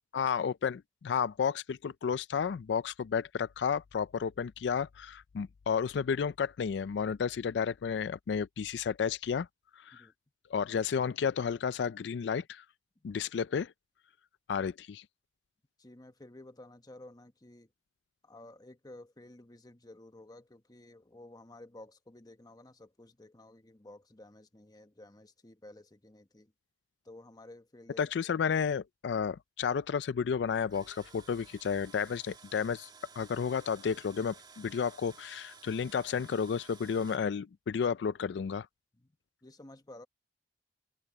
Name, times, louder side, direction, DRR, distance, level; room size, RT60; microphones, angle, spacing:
voice 1, 0.1-9.5 9.8-10.1 10.5-12.6 13.0-13.7 14.5-15.0 28.0-32.9 33.2-38.7, left 6 dB, 75° left, 0.4 m, -32 dB
voice 2, 15.8-17.7 18.2-26.5 27.0-28.1 38.9-39.2 39.4-40.1, left 1 dB, 25° left, 1.1 m, -53 dB
Tools, 30.5-37.2, right 5 dB, 25° right, 2.4 m, -55 dB
open air
head